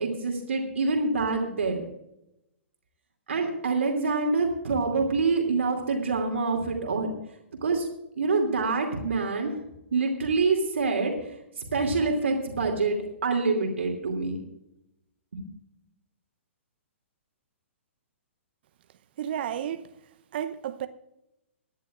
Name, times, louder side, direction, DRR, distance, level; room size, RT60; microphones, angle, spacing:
voice 1, 0.0-1.9 3.3-7.1 7.6-7.9 8.2-9.6 9.9-14.4 15.3-15.4, right 3 dB, 65° right, 2.6 m, -26 dB
voice 2, 19.2-19.8 20.3-20.9, right 10 dB, 50° right, 0.7 m, -31 dB
23.5 x 10.5 x 2.5 m
figure-of-eight pair, 120°, 7 cm